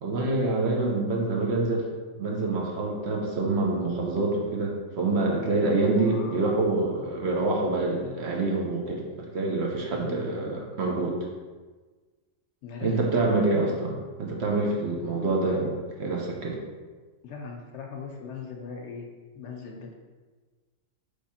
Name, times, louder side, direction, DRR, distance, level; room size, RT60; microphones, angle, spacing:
voice 1, 0.0-1.8 2.2-11.3 12.8-16.6, right 2 dB, 60° right, -2 dB, 0.9 m, -26 dB
voice 2, 6.0-6.5 9.9-10.5 12.6-13.5 17.2-19.1 19.3-19.9, left 5 dB, 65° left, 2 dB, 0.8 m, -39 dB
3.4 x 3.2 x 4.2 m, 1.4 s
omnidirectional pair, 1.4 m